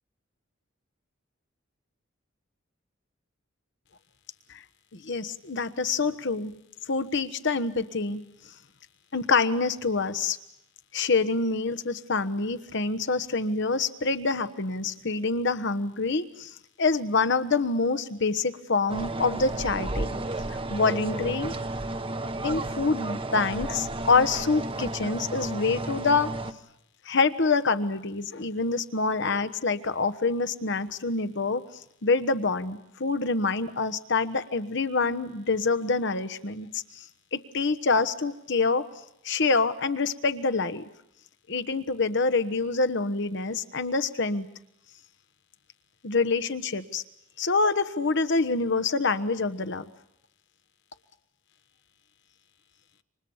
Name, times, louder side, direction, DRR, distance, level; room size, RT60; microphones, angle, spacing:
voice 1, 4.9-6.5 6.9-8.2 9.1-10.4 10.9-20.2 20.5-21.5 22.4-26.4 27.0-31.6 32.0-38.9 39.2-40.8 41.5-44.5 46.0-47.0 47.4-49.8, left 4 dB, 65° left, 13 dB, 1.2 m, -26 dB
sound 1, 18.9-26.5, right 2 dB, 30° right, 0.9 m, -32 dB
29.0 x 25.5 x 7.2 m, 0.80 s
head